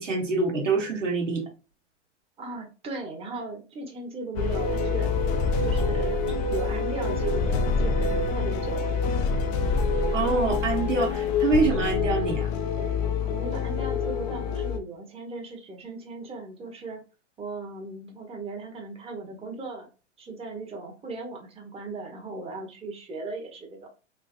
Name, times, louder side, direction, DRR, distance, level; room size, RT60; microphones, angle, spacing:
voice 1, 0.0-1.4 10.1-12.5, right 3 dB, 85° right, 1.2 m, -25 dB
voice 2, 2.4-5.1 5.6-8.8 13.2-17.0 17.4-19.9 20.2-23.9, right 3 dB, 15° right, 1.1 m, -37 dB
sound 1, 4.4-14.8, left 4 dB, 25° left, 0.4 m, -26 dB
3.5 x 2.8 x 2.5 m
hypercardioid pair, 105°, 36 cm